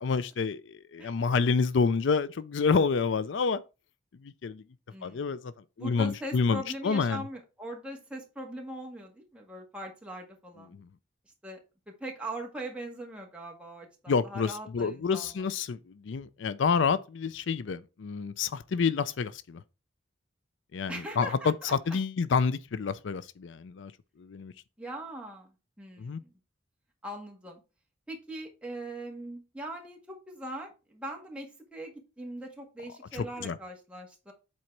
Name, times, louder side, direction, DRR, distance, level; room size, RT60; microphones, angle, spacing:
voice 1, 0.0-3.6 4.2-4.6 5.0-5.5 5.8-7.3 10.8-10.9 14.1-19.6 20.7-23.9 24.2-24.5 26.0-26.2 33.1-33.6, left 5 dB, 75° left, 0.4 m, -28 dB
voice 2, 4.9-5.4 5.8-10.7 11.4-11.6 12.0-15.3 20.9-21.7 24.8-25.5 25.8-26.3 27.0-27.6 28.1-34.3, right 1 dB, 5° right, 1.7 m, -41 dB
7.6 x 4.2 x 4.6 m
head